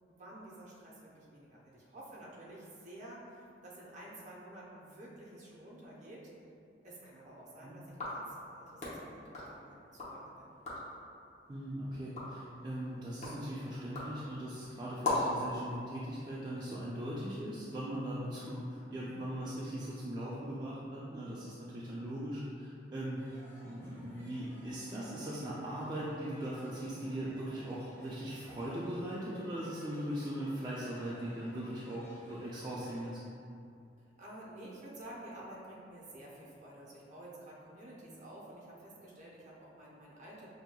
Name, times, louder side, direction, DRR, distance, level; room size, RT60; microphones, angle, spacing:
voice 1, 0.1-6.3 6.8-10.6 34.0-40.5, right 1 dB, 45° right, -5 dB, 0.8 m, -51 dB
sound 1, 7.9-10.2 10.5-11.0 11.5-15.5, left 2 dB, 40° left, 0.8 m, -40 dB
voice 2, 11.5-23.3 23.6-33.2, right 1 dB, 25° right, -8 dB, 0.4 m, -39 dB
sound 2, 23.2-33.1, equal, 15° left, 0.8 m, -57 dB
5.8 x 2.8 x 2.3 m, 2.5 s
head